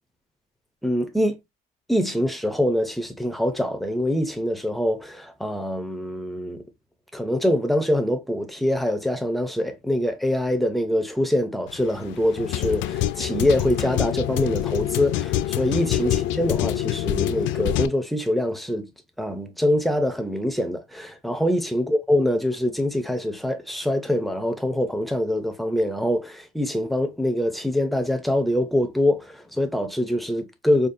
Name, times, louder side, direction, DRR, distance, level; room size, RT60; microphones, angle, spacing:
voice 1, 0.8-1.4 1.9-6.6 7.1-18.9 19.2-30.9, left 1 dB, ahead, 0.4 m, -24 dB
sound 1, 11.7-17.9, left 12 dB, 60° left, 0.4 m, -26 dB
5.1 x 2.3 x 2.5 m
cardioid pair, 175°, 21 cm